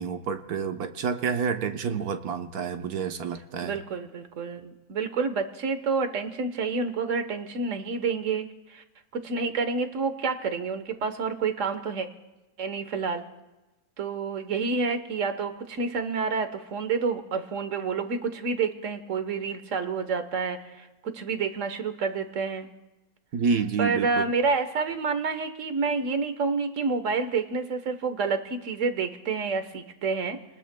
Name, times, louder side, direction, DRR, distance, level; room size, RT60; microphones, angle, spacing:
voice 1, 0.0-3.8 23.3-24.3, right 6 dB, 80° right, 6 dB, 1.4 m, -29 dB
voice 2, 3.6-8.8 9.1-12.1 12.6-13.2 14.0-22.7 23.8-30.4, right 4 dB, 55° right, 9 dB, 1.4 m, -29 dB
30.0 x 20.0 x 2.2 m, 1.1 s
omnidirectional pair, 1.6 m